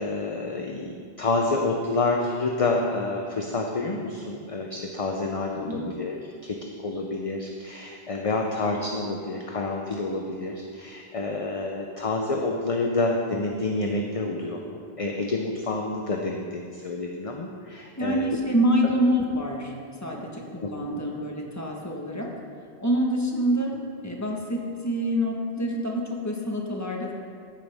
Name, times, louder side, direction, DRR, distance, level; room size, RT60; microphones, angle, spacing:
voice 1, 0.0-18.3 20.6-20.7, left 3 dB, 40° left, 1 dB, 0.7 m, -28 dB
voice 2, 5.5-5.9 18.0-19.7 20.0-22.3 22.8-23.8 24.0-27.1, equal, 15° left, -1 dB, 1.3 m, -26 dB
13.5 x 9.3 x 3.5 m, 2.3 s
omnidirectional pair, 1.1 m